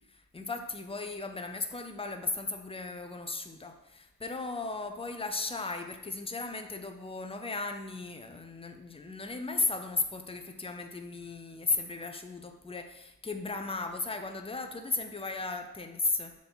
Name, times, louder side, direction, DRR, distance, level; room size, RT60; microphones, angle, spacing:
voice 1, 0.1-16.3, left 3 dB, 15° left, 6 dB, 0.6 m, -35 dB
6.7 x 3.7 x 5.7 m, 0.92 s
wide cardioid pair, 105°, 37 cm